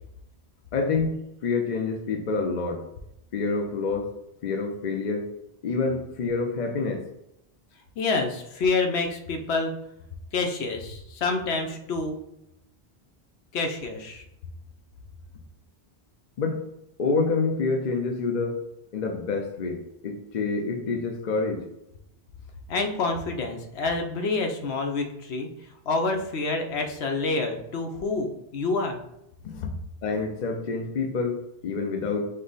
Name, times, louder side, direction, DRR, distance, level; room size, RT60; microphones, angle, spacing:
voice 1, 0.7-1.1 1.4-2.8 3.3-4.1 4.4-5.3 5.6-7.0 16.4-16.6 17.0-18.6 18.9-21.6 29.4-29.7 30.0-31.4 31.6-32.3, left 4 dB, 55° left, 3 dB, 0.6 m, -27 dB
voice 2, 8.0-9.7 10.3-12.2 13.5-14.2 22.7-25.5 25.9-29.0, left 3 dB, 75° left, 4 dB, 0.9 m, -27 dB
5.3 x 2.1 x 3.9 m, 0.83 s
omnidirectional pair, 1.1 m